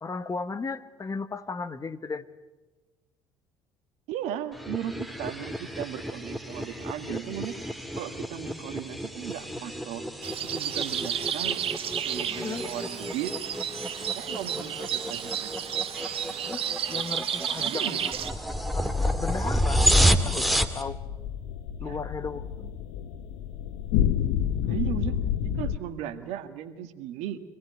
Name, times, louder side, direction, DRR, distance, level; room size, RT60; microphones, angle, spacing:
voice 1, 0.0-2.3 7.0-7.2 12.2-12.7 16.4-18.2 18.7-19.9 20.2-20.9 21.8-22.7, left 4 dB, 25° left, 12 dB, 1.4 m, -36 dB
voice 2, 4.1-7.5 8.0-10.1 10.5-11.6 12.0-13.3 13.8-15.5 17.5-18.1 21.8-22.0 24.6-25.2 25.6-27.4, right 10 dB, 65° right, 9 dB, 1.9 m, -36 dB
sound 1, 4.5-20.8, equal, ahead, 2.3 m, -30 dB
sound 2, 10.2-18.3, right 9 dB, 50° right, 1.3 m, -32 dB
sound 3, 20.1-25.8, left 9 dB, 70° left, 1.0 m, -29 dB
25.5 x 17.5 x 9.4 m, 1.2 s
hypercardioid pair, 60°, 12 cm